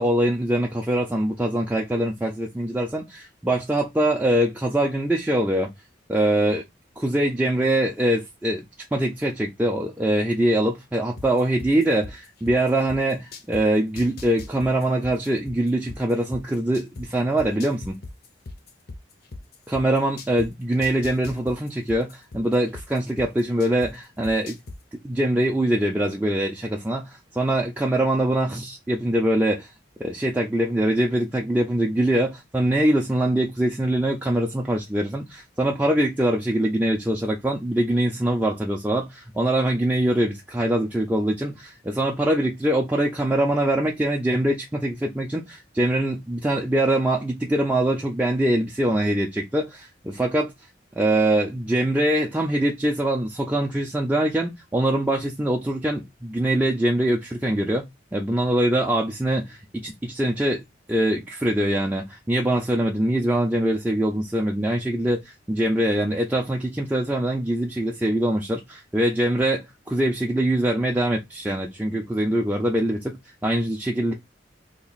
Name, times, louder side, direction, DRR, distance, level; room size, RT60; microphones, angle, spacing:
voice 1, 0.0-5.7 6.1-6.6 7.0-8.6 8.9-18.0 19.7-24.6 25.0-29.7 30.0-50.5 51.0-57.8 58.1-60.6 60.9-74.1, right 1 dB, 10° right, 0.4 m, -23 dB
sound 1, 11.2-13.6 14.0-17.0 17.4-20.5 20.8-23.9 24.2-24.8, left 2 dB, 55° left, 0.6 m, -38 dB
2.9 x 2.3 x 4.0 m
head